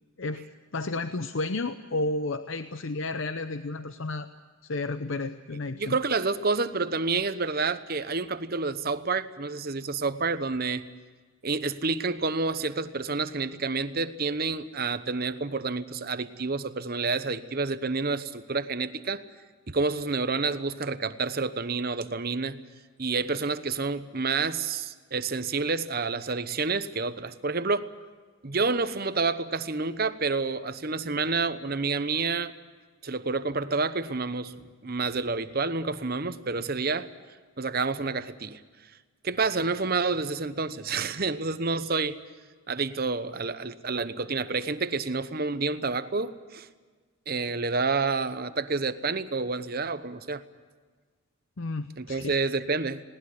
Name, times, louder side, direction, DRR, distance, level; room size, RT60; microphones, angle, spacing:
voice 1, 0.7-4.3 4.6-6.0 51.6-52.4, left 2 dB, 65° left, 9 dB, 0.7 m, -32 dB
voice 2, 5.7-10.9 11.4-19.2 19.7-22.6 23.0-27.9 28.4-32.5 33.0-34.5 34.8-37.1 37.6-38.6 39.2-42.2 42.7-46.7 47.3-50.4 52.0-53.0, right 4 dB, 45° right, 12 dB, 0.9 m, -29 dB
20.5 x 19.0 x 9.4 m, 1.4 s
head